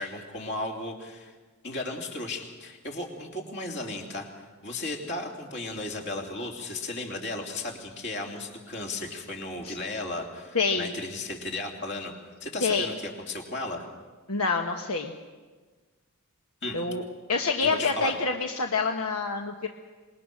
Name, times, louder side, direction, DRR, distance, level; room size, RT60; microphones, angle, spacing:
voice 1, 0.0-1.3 1.6-4.3 4.6-12.1 12.4-13.9 16.6-16.8 17.6-18.1, left 2 dB, 50° left, 1 dB, 3.3 m, -35 dB
voice 2, 10.5-10.9 12.6-12.9 14.3-15.1 16.7-17.0 17.3-19.7, left 4 dB, 75° left, 3 dB, 1.3 m, -27 dB
26.5 x 20.5 x 6.3 m, 1.4 s
head